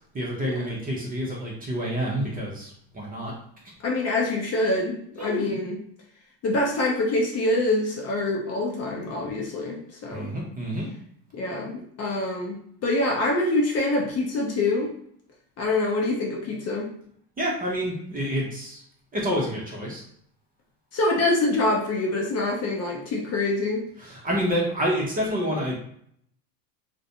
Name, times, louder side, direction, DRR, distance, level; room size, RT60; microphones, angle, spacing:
voice 1, 0.1-3.3 5.2-5.4 10.1-10.9 17.4-18.8 19.1-20.0 24.0-25.8, equal, 20° right, -3 dB, 0.6 m, -28 dB
voice 2, 3.8-5.8 6.4-10.3 11.3-14.9 15.6-16.9 20.9-23.9, left 2 dB, 30° left, -1 dB, 0.6 m, -25 dB
2.4 x 2.2 x 2.8 m, 0.68 s
hypercardioid pair, 95°, 49 cm